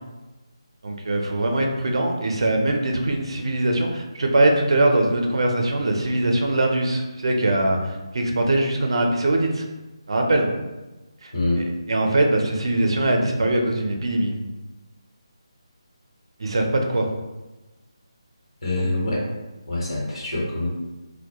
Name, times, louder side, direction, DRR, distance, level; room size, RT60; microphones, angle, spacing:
voice 1, 0.8-9.6 10.1-10.5 11.2-11.3 11.9-14.3 16.4-17.1 18.8-18.9, right 1 dB, 65° right, 2 dB, 0.4 m, -22 dB
voice 2, 11.3-11.6 18.6-19.3 19.7-20.7, left 2 dB, 70° left, -5 dB, 1.0 m, -25 dB
2.2 x 2.1 x 2.8 m, 1.1 s
figure-of-eight pair, 160°, 3 cm